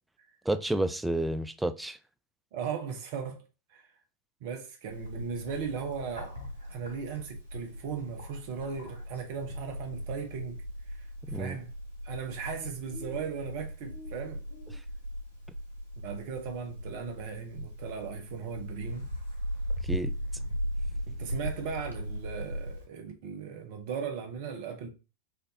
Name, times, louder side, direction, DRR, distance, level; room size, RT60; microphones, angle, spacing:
voice 1, 0.5-2.0 11.3-11.6 19.9-20.1, right 1 dB, 5° right, 0.3 m, -30 dB
voice 2, 2.5-3.4 3.7-3.9 4.4-6.3 6.7-11.0 11.3-11.7 12.0-14.4 16.0-19.1 21.1-24.9, right 6 dB, 50° right, 0.8 m, -37 dB
Bird, 4.9-22.8, equal, 90° left, 1.4 m, -38 dB
4.3 x 2.6 x 2.8 m
figure-of-eight pair, 90°, 0 cm